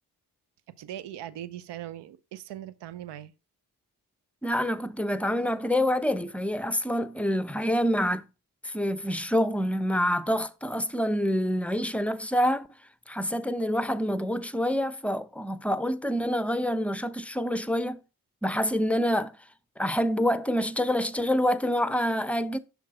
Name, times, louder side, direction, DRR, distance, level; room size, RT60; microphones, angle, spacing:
voice 1, 0.8-3.3, right 12 dB, 80° right, 0.7 m, -40 dB
voice 2, 4.4-8.2 8.6-12.7 13.1-18.0 18.4-19.4 19.8-22.6, equal, 5° left, 0.6 m, -27 dB
6.0 x 3.5 x 5.9 m
supercardioid pair, 45°, 42 cm